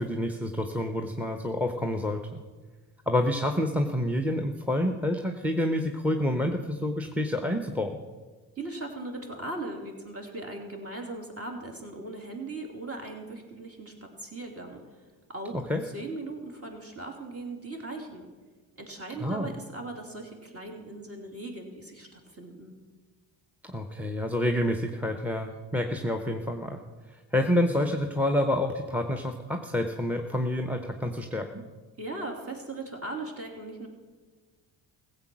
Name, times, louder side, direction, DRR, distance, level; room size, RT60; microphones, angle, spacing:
voice 1, 0.0-2.4 3.1-7.9 15.5-15.8 19.2-19.5 23.7-26.8 27.3-31.6, left 1 dB, 5° right, 5 dB, 1.0 m, -28 dB
voice 2, 8.6-14.8 15.3-18.3 18.8-22.8 32.0-33.9, right 2 dB, 30° right, 2 dB, 3.1 m, -39 dB
15.5 x 7.9 x 6.2 m, 1.3 s
supercardioid pair, 55°, 46 cm